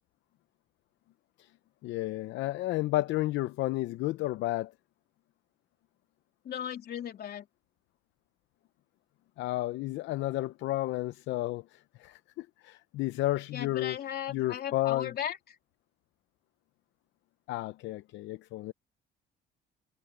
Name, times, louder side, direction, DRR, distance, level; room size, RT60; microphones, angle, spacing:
voice 1, 1.8-4.7 9.4-13.9 14.3-15.1 17.5-18.7, left 17 dB, 80° left, 0.7 m, -32 dB
voice 2, 6.4-7.5 13.5-15.6, left 10 dB, 60° left, 3.4 m, -36 dB
cardioid pair, 90°, 19 cm